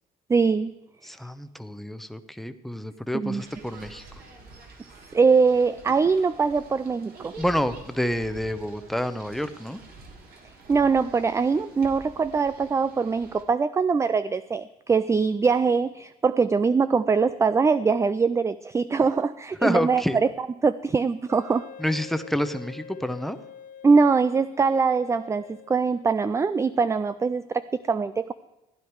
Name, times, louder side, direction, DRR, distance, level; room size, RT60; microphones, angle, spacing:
voice 1, 0.3-0.7 3.1-3.4 5.1-7.3 10.7-20.0 20.6-21.7 23.8-28.3, right 5 dB, 15° right, 14 dB, 0.4 m, -22 dB
voice 2, 1.0-4.0 7.4-9.8 19.6-20.2 21.8-23.4, equal, ahead, 10 dB, 0.8 m, -28 dB
sound 1, 3.4-13.4, right 3 dB, 60° right, 2.7 m, -47 dB
Wind instrument woodwind instrument, 21.3-26.4, left 6 dB, 55° left, 0.8 m, -46 dB
15.5 x 10.0 x 4.7 m, 0.97 s
cardioid pair, 110°, 17 cm